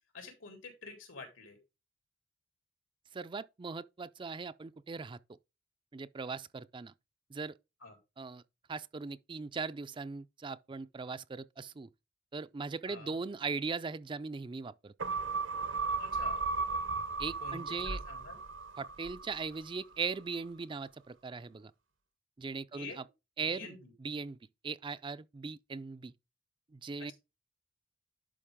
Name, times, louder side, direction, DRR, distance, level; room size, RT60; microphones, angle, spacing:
voice 1, 0.1-1.6 7.8-8.0 12.9-13.2 16.0-16.4 17.4-18.4 22.7-23.0 23.5-23.9 27.0-27.1, left 3 dB, 85° left, 3.8 m, -48 dB
voice 2, 3.1-5.2 5.9-6.9 7.3-7.6 8.2-8.4 8.7-11.9 12.3-14.9 17.2-18.0 18.8-21.7 22.4-23.0 23.4-23.7 24.0-24.4 24.6-26.1 26.7-27.1, right 4 dB, 25° right, 0.4 m, -39 dB
sound 1, 15.0-19.7 20.1-20.2, right 4 dB, 75° right, 0.9 m, -35 dB
11.0 x 5.2 x 3.6 m
head